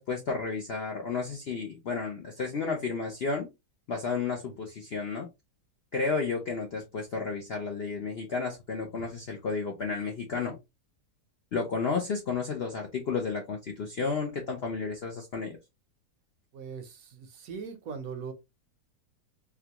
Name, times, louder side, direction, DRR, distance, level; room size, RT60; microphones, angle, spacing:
voice 1, 0.0-3.5 3.9-5.3 5.9-10.6 11.5-15.6, left 4 dB, 65° left, 0.6 m, -32 dB
voice 2, 16.5-18.3, right 6 dB, 65° right, 1.0 m, -40 dB
3.6 x 2.3 x 2.8 m
omnidirectional pair, 1.8 m